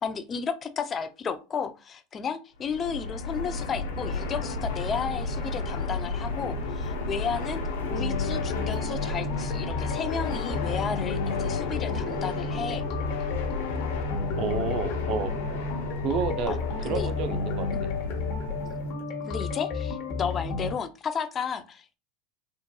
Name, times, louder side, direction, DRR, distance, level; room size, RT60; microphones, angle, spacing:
voice 1, 0.0-12.8 16.5-17.1 17.7-17.8 19.2-22.0, left 6 dB, 30° left, 0.5 m, -33 dB
Fixed-wing aircraft airplane, 2.6-19.0, left 3 dB, 85° left, 0.8 m, -33 dB
sound 1, 7.9-20.7, left 4 dB, 55° left, 1.3 m, -32 dB
voice 2, 14.4-15.3 16.0-16.6 16.8-17.7, right 5 dB, 50° right, 0.6 m, -29 dB
3.7 x 2.5 x 2.3 m
supercardioid pair, 110°, 0 cm